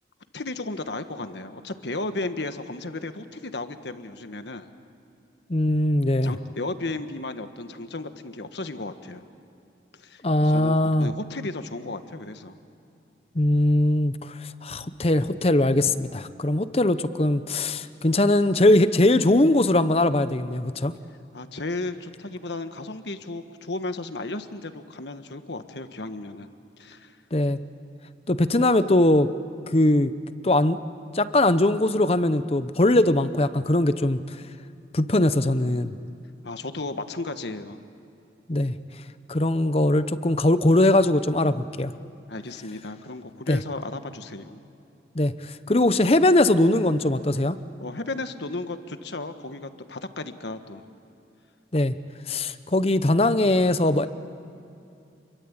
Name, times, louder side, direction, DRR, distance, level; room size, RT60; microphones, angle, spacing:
voice 1, 0.3-4.7 6.2-9.2 10.0-12.6 21.3-26.5 26.8-27.2 36.4-37.8 42.3-44.6 47.8-50.8, left 2 dB, 70° left, 9 dB, 1.4 m, -34 dB
voice 2, 5.5-6.4 10.2-11.1 13.3-20.9 27.3-27.6 28.3-29.3 29.7-30.1 30.4-30.8 31.1-34.4 34.9-36.0 38.5-38.7 39.3-41.9 43.5-43.6 45.1-47.6 51.7-51.9 52.3-54.1, left 1 dB, 30° left, 12 dB, 0.8 m, -21 dB
29.5 x 23.0 x 8.8 m, 2.6 s
head